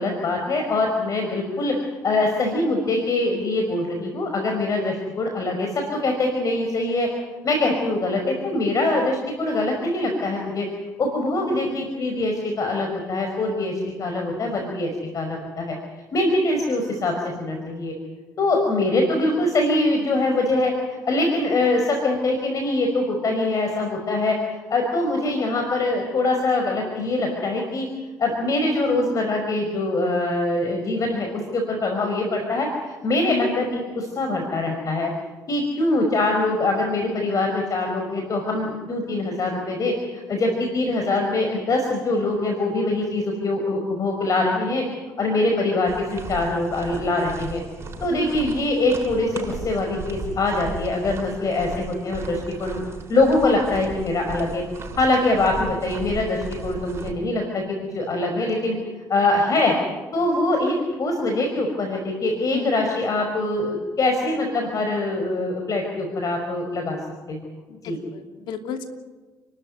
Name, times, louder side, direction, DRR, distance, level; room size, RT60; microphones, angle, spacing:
voice 1, 0.0-7.1 7.4-10.7 11.0-15.8 16.1-17.9 18.4-27.9 28.2-35.1 35.5-44.8 45.2-47.6 48.0-52.8 53.1-54.6 55.0-57.6 57.9-58.7 59.1-59.8 60.1-67.0 67.3-67.5 67.8-68.0, left 2 dB, 45° left, 3 dB, 5.4 m, -23 dB
sound 1, 45.9-57.1, right 3 dB, 35° right, 7.3 m, -36 dB
voice 2, 62.5-62.9 67.7-68.9, left 6 dB, 75° left, 5 dB, 2.8 m, -32 dB
30.0 x 13.0 x 9.5 m, 1.3 s
supercardioid pair, 80°, 8 cm